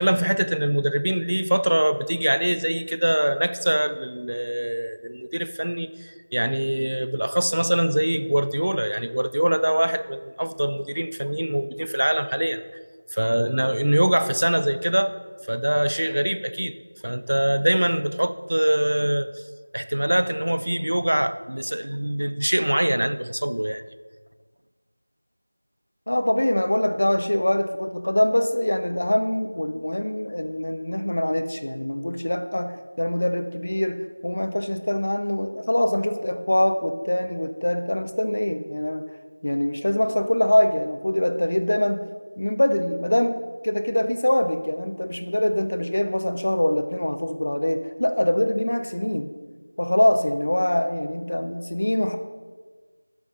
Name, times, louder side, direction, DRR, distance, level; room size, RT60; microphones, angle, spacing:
voice 1, 0.0-12.6 13.1-15.2 15.5-16.8 17.0-19.4 19.7-23.8, right 1 dB, 55° right, 12 dB, 0.4 m, -23 dB
voice 2, 26.1-39.0 39.4-42.0 42.4-43.3 43.6-49.3 49.8-52.2, left 1 dB, 45° left, 7 dB, 0.7 m, -23 dB
11.5 x 5.9 x 3.9 m, 1.4 s
figure-of-eight pair, 175°, 0 cm